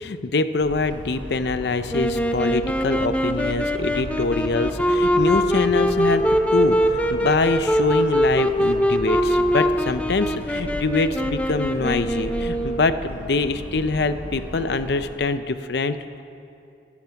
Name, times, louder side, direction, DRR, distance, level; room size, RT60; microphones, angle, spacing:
voice 1, 0.0-6.2 6.5-16.2, left 3 dB, 65° left, 11 dB, 0.6 m, -24 dB
Motor vehicle (road) / Siren, 0.6-15.1, equal, 10° right, 3.5 m, -36 dB
Wind instrument woodwind instrument, 1.9-13.0, equal, 10° left, 0.7 m, -22 dB
17.5 x 12.0 x 5.8 m, 2.6 s
head